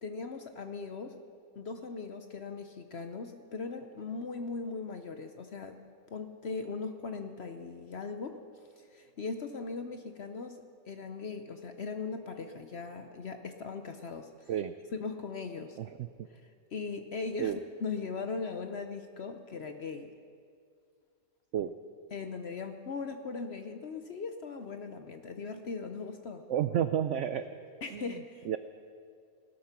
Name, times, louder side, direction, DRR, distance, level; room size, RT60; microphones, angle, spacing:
voice 1, 0.0-1.2 1.6-5.8 6.1-8.4 8.8-10.6 10.9-14.5 14.9-15.8 16.3-16.4 16.7-20.1 22.1-26.4 27.8-28.5, left 4 dB, 55° left, 7 dB, 0.8 m, -39 dB
voice 2, 26.5-27.4 27.9-28.1 28.5-28.6, right 10 dB, 75° right, 11 dB, 0.6 m, -30 dB
17.5 x 12.5 x 5.9 m, 2.3 s
omnidirectional pair, 1.8 m